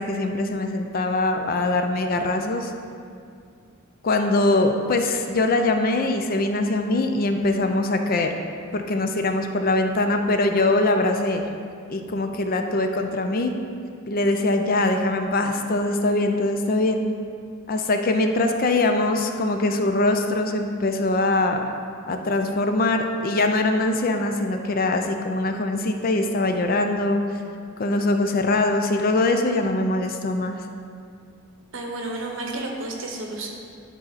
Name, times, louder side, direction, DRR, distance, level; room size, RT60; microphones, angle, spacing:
voice 1, 0.0-2.7 4.0-8.4 8.7-11.4 11.9-13.5 14.1-17.0 17.7-21.7 22.0-27.2 27.8-30.6, left 2 dB, 45° left, 5 dB, 0.4 m, -22 dB
voice 2, 31.7-33.5, right 2 dB, 65° right, 1 dB, 1.0 m, -31 dB
10.5 x 4.2 x 4.1 m, 2.3 s
head